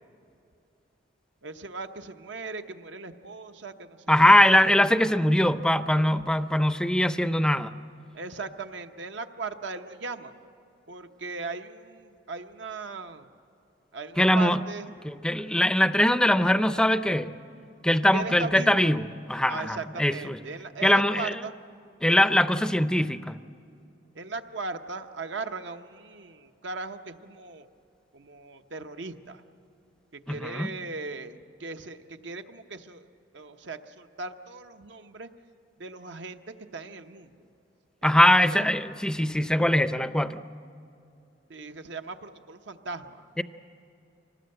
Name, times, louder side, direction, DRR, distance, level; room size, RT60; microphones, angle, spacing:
voice 1, 1.4-4.6 8.1-10.4 10.9-13.3 13.9-14.9 18.1-18.8 19.5-21.5 24.1-27.7 28.1-29.4 30.1-33.1 33.3-35.3 35.8-36.4 36.7-37.5 38.0-38.6 41.5-43.3, right 3 dB, 75° right, 7 dB, 1.0 m, -38 dB
voice 2, 4.1-7.8 14.2-14.6 15.0-17.3 17.8-20.4 20.8-21.4 22.0-23.4 30.3-30.7 38.0-40.4 43.4-43.5, left 1 dB, 5° left, 12 dB, 0.5 m, -22 dB
25.0 x 19.0 x 7.8 m, 2.6 s
head